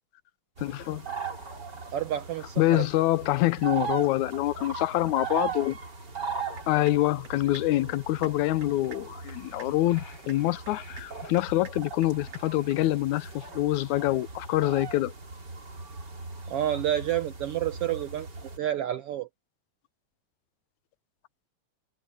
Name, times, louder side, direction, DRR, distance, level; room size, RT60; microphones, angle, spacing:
voice 1, 0.6-1.1 2.6-5.8 6.7-15.1, left 16 dB, 85° left, 2.1 m, -26 dB
sound 1, 0.6-18.6, right 5 dB, 35° right, 4.0 m, -39 dB
voice 2, 1.9-2.9 16.5-18.3 18.6-19.3, right 11 dB, 75° right, 1.4 m, -29 dB
sound 2, 6.6-7.0 7.2-7.6 7.9-8.3 8.6-9.0 9.3-9.7 10.0-10.4 10.7-11.0 11.3-11.7 12.0-12.4 12.7-12.8, right 6 dB, 55° right, 9.3 m, -46 dB
sound 3, 9.3-11.4 12.1-13.3, left 3 dB, 25° left, 5.3 m, -54 dB
omnidirectional pair, 3.4 m